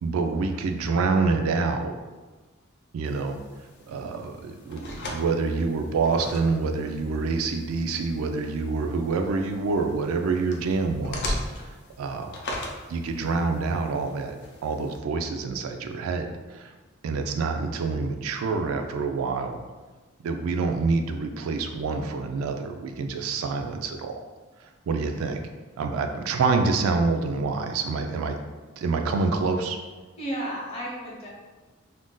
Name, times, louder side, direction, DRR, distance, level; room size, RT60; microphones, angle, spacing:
voice 1, 0.0-1.9 2.9-3.4 3.9-11.4 12.0-12.4 12.9-14.4 14.6-16.7 17.0-19.6 20.2-24.1 24.6-25.5 25.8-28.4 28.8-29.8, right 4 dB, 80° right, 6 dB, 0.3 m, -27 dB
sound 1, 3.0-15.0, left 1 dB, 55° left, 0.4 m, -39 dB
voice 2, 30.2-31.3, right 1 dB, 30° left, -4 dB, 0.8 m, -32 dB
2.5 x 2.2 x 3.7 m, 1.3 s
head